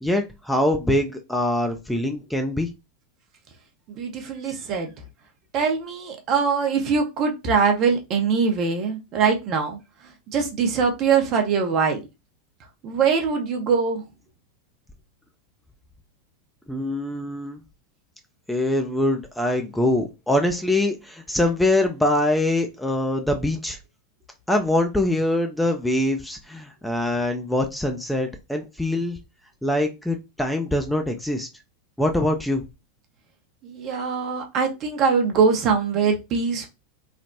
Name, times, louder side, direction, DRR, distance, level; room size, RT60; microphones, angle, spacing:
voice 1, 0.0-2.7 4.5-4.6 16.7-17.6 18.5-23.8 24.5-29.2 29.6-31.5 32.0-32.6, left 1 dB, 5° left, 0.4 m, -23 dB
voice 2, 4.0-4.9 5.5-9.8 10.3-12.0 12.8-14.0 33.6-36.7, right 5 dB, 40° right, 0.7 m, -22 dB
3.2 x 2.0 x 2.6 m
figure-of-eight pair, 90°, 0 cm